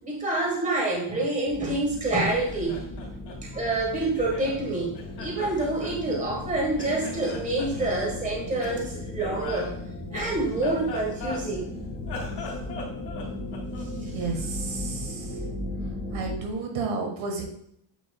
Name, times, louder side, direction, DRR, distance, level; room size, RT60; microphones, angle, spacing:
voice 1, 0.0-2.8 3.5-9.7 10.1-11.7, right 2 dB, 15° right, -1 dB, 1.4 m, -27 dB
sound 1, 1.4-16.4, left 2 dB, 25° left, 1.8 m, -36 dB
Laughter, 2.3-4.6 4.9-6.5 6.8-7.9 8.6-11.7 12.0-14.0, left 2 dB, 60° left, 2.5 m, -40 dB
voice 2, 13.9-15.4 16.1-17.4, right 4 dB, 80° right, 2 dB, 1.7 m, -32 dB
8.9 x 4.8 x 2.3 m, 0.71 s
cardioid pair, 155°, 46 cm